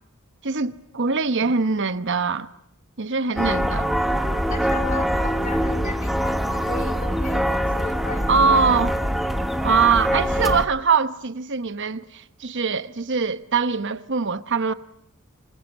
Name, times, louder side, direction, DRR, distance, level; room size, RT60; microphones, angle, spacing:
voice 1, 0.4-2.5 3.0-3.9 8.3-8.9 9.6-14.7, right 5 dB, 55° right, 1.0 m, -22 dB
voice 2, 3.2-3.6 4.5-9.0, left 3 dB, 35° left, 2.6 m, -37 dB
sound 1, 3.4-10.7, equal, ahead, 1.2 m, -23 dB
27.0 x 20.5 x 8.1 m
head